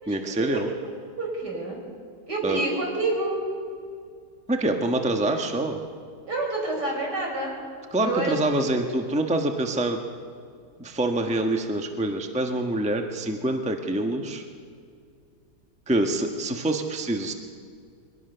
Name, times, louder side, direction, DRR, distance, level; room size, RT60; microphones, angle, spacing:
voice 1, 0.1-0.7 2.4-2.6 4.5-5.8 7.9-10.0 10.8-14.4 15.9-17.3, right 1 dB, 5° right, 4 dB, 1.1 m, -25 dB
voice 2, 1.2-1.8 2.3-3.4 6.3-7.5 8.0-8.4, right 2 dB, 70° right, -1 dB, 5.9 m, -28 dB
23.0 x 18.5 x 6.8 m, 2.2 s
omnidirectional pair, 1.8 m